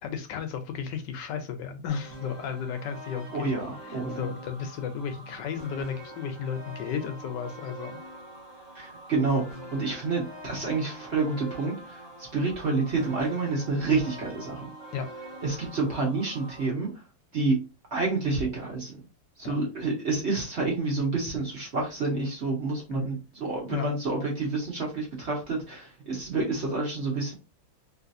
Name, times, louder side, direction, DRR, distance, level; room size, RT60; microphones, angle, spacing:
voice 1, 0.0-3.5 3.8-8.0 14.9-15.1 19.4-19.5 22.9-23.1 23.7-23.9, left 7 dB, 75° left, 7 dB, 1.2 m, -34 dB
sound 1, 1.9-16.7, right 1 dB, 30° right, 0.5 m, -44 dB
voice 2, 3.3-4.3 8.7-12.0 12.3-14.7 15.4-16.9 17.3-17.6 17.9-18.9 19.4-27.3, right 3 dB, 45° right, -2 dB, 1.0 m, -28 dB
3.2 x 2.9 x 2.6 m, 0.29 s
omnidirectional pair, 2.1 m